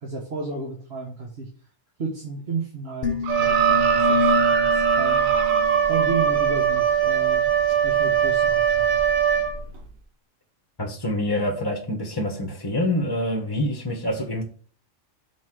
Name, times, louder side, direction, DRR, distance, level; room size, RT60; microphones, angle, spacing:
voice 1, 0.0-1.5 2.0-5.3 5.9-7.4 7.8-9.0, right 3 dB, 50° right, -3 dB, 1.5 m, -32 dB
sound 1, 3.0-6.4, left 6 dB, 45° left, 0.9 m, -29 dB
sound 2, 3.2-6.9 7.7-7.8, right 10 dB, 65° right, 0.9 m, -27 dB
Wind instrument woodwind instrument, 3.3-9.8, right 8 dB, 85° right, 1.5 m, -21 dB
voice 2, 10.8-14.4, left 1 dB, 20° left, 1 dB, 1.1 m, -26 dB
6.0 x 3.8 x 6.1 m, 0.43 s
omnidirectional pair, 1.4 m